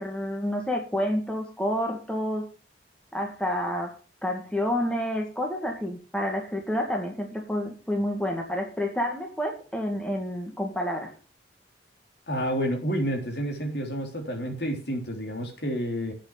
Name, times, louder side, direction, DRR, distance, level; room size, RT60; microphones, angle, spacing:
voice 1, 0.0-2.5 3.1-11.1, left 1 dB, 5° left, 2 dB, 2.0 m, -29 dB
voice 2, 12.3-16.1, equal, 70° left, 3 dB, 3.4 m, -29 dB
8.4 x 6.8 x 8.5 m, 0.37 s
head